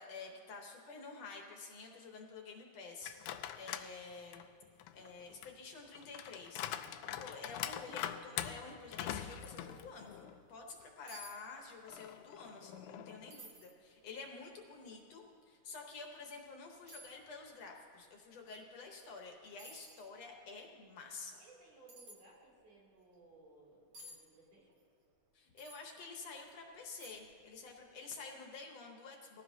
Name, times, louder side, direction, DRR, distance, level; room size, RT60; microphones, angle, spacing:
voice 1, 0.0-4.4 4.9-21.4 25.3-29.4, left 4 dB, 65° left, 1 dB, 2.0 m, -50 dB
sound 1, 3.0-3.9 4.3-10.4 10.8-10.9 11.9-13.4, left 11 dB, 80° left, 2.0 m, -44 dB
voice 2, 3.4-3.7 6.7-7.9 10.5-10.8 18.4-18.6 21.4-24.7, right 2 dB, 80° right, -4 dB, 4.4 m, -63 dB
sound 2, 10.7-10.8 11.1-11.4 11.6-12.2 12.6-12.7 13.3-13.7 14.4-14.5 16.0-16.1 16.9-17.2 19.0-19.2 19.6-20.1 21.9-22.2 23.9-24.2 25.6-25.9 26.4-26.5 27.0-27.4 27.7-27.8, right 1 dB, 55° right, 2.2 m, -53 dB
19.0 x 15.0 x 2.8 m, 2.5 s
omnidirectional pair, 3.5 m